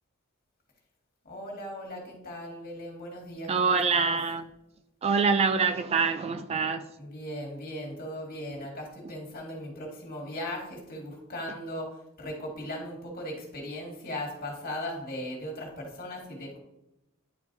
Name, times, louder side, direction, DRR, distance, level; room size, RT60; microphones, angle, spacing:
voice 1, 1.2-4.2 7.0-16.6, left 1 dB, 45° left, -1 dB, 2.1 m, -38 dB
voice 2, 3.5-4.4 5.0-6.8, right 5 dB, 30° right, 9 dB, 0.3 m, -25 dB
10.0 x 4.7 x 2.6 m, 0.91 s
head